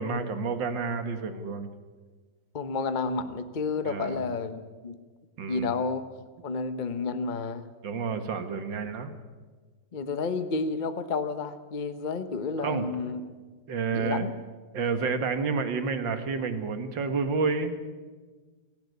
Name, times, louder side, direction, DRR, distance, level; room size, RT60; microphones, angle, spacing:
voice 1, 0.0-1.7 3.9-4.2 5.4-5.7 7.8-9.1 12.6-12.8 13.7-14.3 14.7-17.7, right 4 dB, 85° right, 9 dB, 2.2 m, -29 dB
voice 2, 2.5-5.0 5.5-6.0 6.4-7.7 9.9-13.2 13.9-14.3, left 4 dB, 35° left, 10 dB, 0.9 m, -31 dB
17.5 x 16.5 x 9.4 m, 1.4 s
omnidirectional pair, 2.0 m